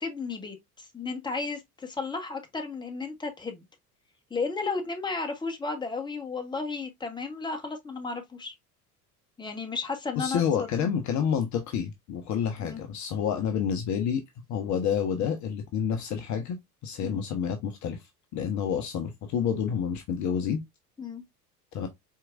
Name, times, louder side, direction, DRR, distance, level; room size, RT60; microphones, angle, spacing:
voice 1, 0.0-3.6 4.3-8.5 9.4-10.9 12.6-12.8 17.0-17.2 21.0-21.2, left 4 dB, 10° left, 1.2 m, -34 dB
voice 2, 10.2-14.2 14.5-18.0 18.3-20.6 21.7-21.9, left 7 dB, 40° left, 0.8 m, -29 dB
4.5 x 3.7 x 2.4 m
figure-of-eight pair, 75°, 46 cm